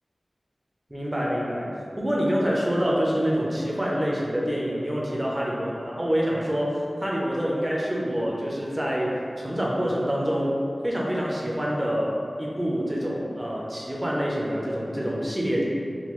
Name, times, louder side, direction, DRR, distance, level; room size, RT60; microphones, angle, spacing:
voice 1, 0.9-1.7 2.0-9.1 9.4-10.5 10.8-15.6, equal, 20° right, -4 dB, 0.5 m, -26 dB
3.7 x 2.3 x 3.0 m, 2.5 s
wide cardioid pair, 60°, 0 cm